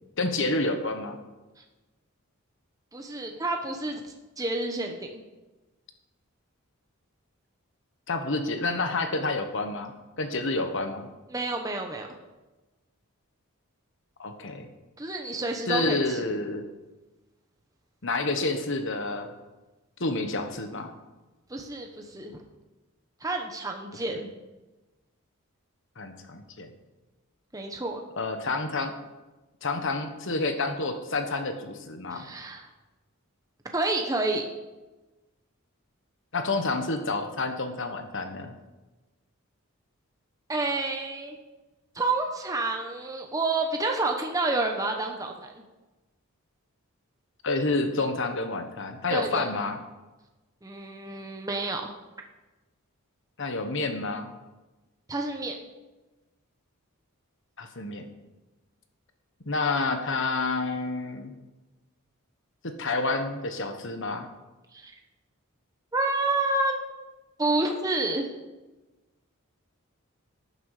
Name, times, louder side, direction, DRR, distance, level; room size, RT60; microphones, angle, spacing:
voice 1, 0.2-1.2 8.1-9.9 10.2-11.1 14.2-14.7 15.7-16.6 18.0-19.3 20.0-20.9 24.1-24.2 26.0-26.7 28.2-28.9 29.6-32.3 36.3-38.5 47.4-49.8 53.4-54.3 57.6-58.0 59.4-61.3 62.6-64.3, left 3 dB, 60° left, 7 dB, 1.4 m, -29 dB
voice 2, 2.9-5.2 11.3-12.1 15.0-16.3 21.5-22.3 23.2-24.3 27.5-28.0 32.1-32.7 33.7-34.4 40.5-41.4 41.9-45.6 49.1-49.5 50.6-51.9 55.1-55.6 64.7-64.9 65.9-66.8 67.4-68.3, right 2 dB, 15° right, 2 dB, 1.0 m, -29 dB
12.0 x 10.0 x 5.0 m, 1.1 s
head